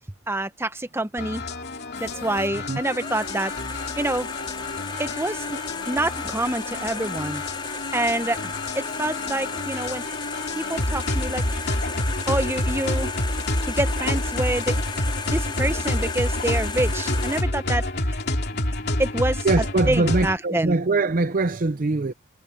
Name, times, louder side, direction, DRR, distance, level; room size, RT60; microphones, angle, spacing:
voice 1, 0.3-1.4 2.0-4.3 5.0-5.6 5.9-7.4 7.9-10.0 10.5-11.8 12.3-13.1 13.7-14.8 15.3-18.2 19.0-19.5 19.9-20.8, right 1 dB, 10° right, 1.0 m, -27 dB
sound 1, 1.2-20.4, left 1 dB, 50° left, 2.9 m, -28 dB
sound 2, 1.9-17.4, left 4 dB, 25° left, 4.7 m, -34 dB
voice 2, 19.4-22.1, right 3 dB, 40° right, 0.6 m, -22 dB
head